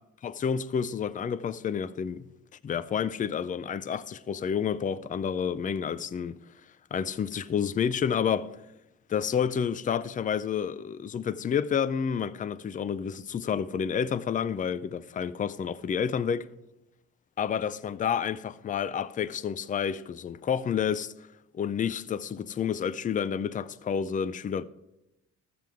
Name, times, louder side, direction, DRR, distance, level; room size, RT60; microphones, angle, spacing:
voice 1, 0.2-2.3 2.6-6.4 6.9-8.5 9.1-16.4 17.4-21.1 21.5-24.6, left 7 dB, 25° left, 0.4 m, -29 dB
13.0 x 7.6 x 3.6 m
cardioid pair, 90°, 30 cm